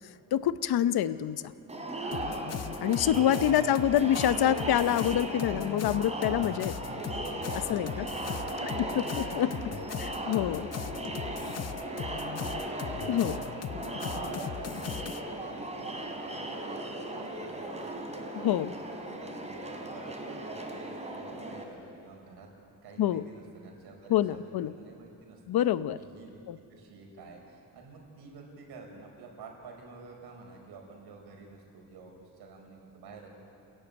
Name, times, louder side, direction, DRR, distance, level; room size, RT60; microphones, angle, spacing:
voice 1, 0.0-1.5 2.8-6.8 7.5-8.1 8.6-9.5 10.0-10.7 13.1-13.4 18.4-18.7 23.0-23.2 24.1-24.7 25.5-26.0 26.5-26.6, left 11 dB, 75° left, 14 dB, 0.8 m, -27 dB
Crowd, 1.7-21.6, right 1 dB, 15° right, 3.1 m, -37 dB
sound 1, 2.1-15.2, left 9 dB, 40° left, 0.7 m, -39 dB
voice 2, 7.6-8.8 9.4-10.1 10.6-10.8 12.1-12.6 13.3-13.6 14.0-18.0 18.3-18.8 19.1-22.5 22.8-25.4 25.9-26.4 26.7-33.3, right 4 dB, 90° right, 2 dB, 5.2 m, -50 dB
28.5 x 14.0 x 9.4 m, 2.8 s
cardioid pair, 125°, 38 cm